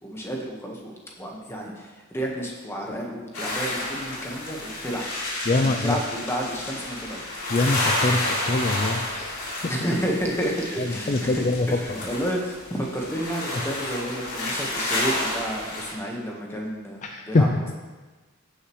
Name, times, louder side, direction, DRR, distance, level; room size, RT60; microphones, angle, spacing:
voice 1, 0.0-5.1 5.6-7.2 9.7-11.4 11.7-17.7, equal, 10° left, -1 dB, 1.3 m, -31 dB
sound 1, 3.3-15.9, left 1 dB, 85° left, 3.3 m, -30 dB
voice 2, 5.5-6.0 7.5-9.7 10.8-11.7 12.0-12.1 17.0-17.5, left 2 dB, 35° left, 4 dB, 0.4 m, -24 dB
15.5 x 6.5 x 3.1 m, 1.3 s
head